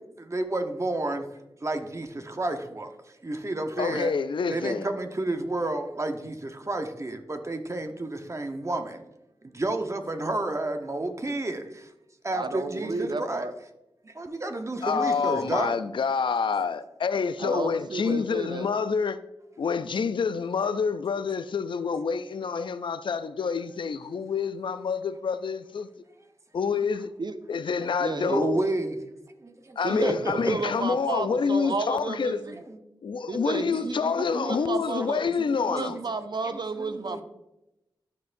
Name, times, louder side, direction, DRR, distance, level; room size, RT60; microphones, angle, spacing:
voice 1, 0.2-1.3 1.6-2.9 3.2-4.1 4.5-9.0 9.5-11.9 12.2-13.4 14.0-15.7 28.3-29.0 29.4-30.7 32.5-32.8 34.2-34.6 35.5-35.6 35.9-36.0 36.5-37.2, right 2 dB, 35° right, 1.0 m, -31 dB
voice 2, 3.8-4.9 14.8-19.2 19.6-25.9 26.5-27.1 27.5-28.6 29.8-32.4 33.0-36.0, left 5 dB, 70° left, 0.4 m, -27 dB
voice 3, 12.3-13.5 17.4-18.7 27.2-27.3 28.0-28.4 29.8-32.6 33.3-35.2 35.6-37.2, right 3 dB, 60° right, 0.5 m, -32 dB
13.0 x 4.5 x 2.6 m
cardioid pair, 40°, 9 cm